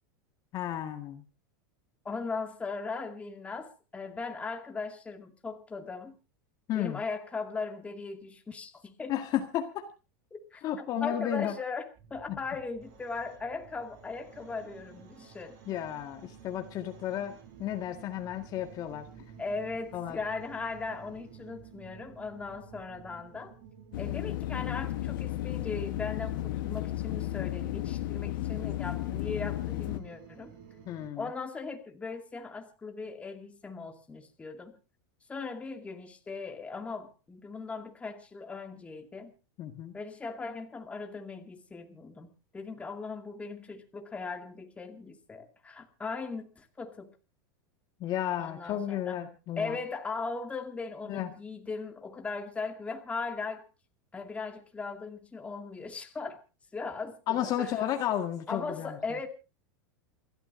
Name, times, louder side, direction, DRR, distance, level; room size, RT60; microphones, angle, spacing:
voice 1, 0.5-1.2 6.7-7.0 9.1-9.9 10.6-11.5 12.3-12.4 15.7-19.1 19.9-20.2 30.9-31.3 39.6-39.9 48.0-49.8 51.1-51.3 57.3-59.2, left 11 dB, 35° left, 5 dB, 1.8 m, -33 dB
voice 2, 2.0-6.1 6.8-9.1 10.3-11.9 12.1-15.6 19.4-23.5 24.0-30.5 31.2-34.8 35.3-39.3 39.9-47.2 48.4-49.2 49.6-53.6 54.1-56.4 56.7-57.7 58.5-59.3, left 4 dB, 10° left, 4 dB, 2.3 m, -38 dB
sound 1, 11.9-31.1, right 7 dB, 55° right, 6.3 m, -52 dB
sound 2, 23.9-30.0, left 16 dB, 70° left, 1.2 m, -33 dB
28.5 x 13.0 x 2.7 m, 0.32 s
supercardioid pair, 145°, 11 cm